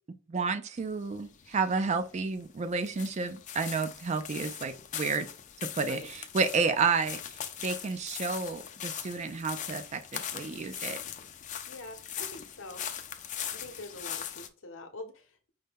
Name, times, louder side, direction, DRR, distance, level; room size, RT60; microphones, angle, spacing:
voice 1, 0.3-5.3 5.8-7.2 7.6-11.0, right 4 dB, 35° right, 0.3 m, -31 dB
sound 1, 0.8-14.5, left 9 dB, 40° left, 0.4 m, -41 dB
voice 2, 11.7-12.8 13.5-15.5, left 2 dB, 75° left, 0.8 m, -45 dB
5.5 x 2.2 x 3.4 m
head